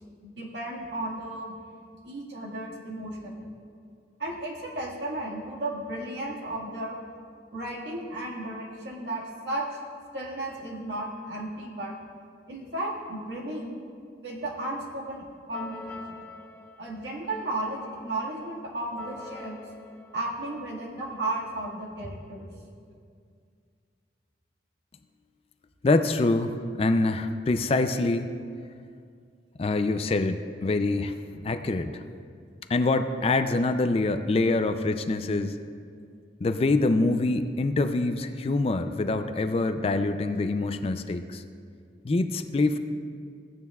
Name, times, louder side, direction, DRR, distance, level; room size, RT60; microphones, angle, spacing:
voice 1, 0.2-1.6 2.1-3.6 4.2-7.0 7.5-9.8 10.1-12.0 12.5-13.8 14.2-16.3 16.8-19.6 20.1-22.5, right 1 dB, 75° right, -3 dB, 1.8 m, -34 dB
sound 1, 15.5-21.3, left 3 dB, 15° left, 0.9 m, -47 dB
voice 2, 25.8-28.3 29.6-31.2 31.4-32.0 32.7-35.6 36.4-41.4 42.0-42.8, left 2 dB, 35° left, 9 dB, 0.4 m, -25 dB
15.5 x 9.3 x 2.3 m, 2.2 s
head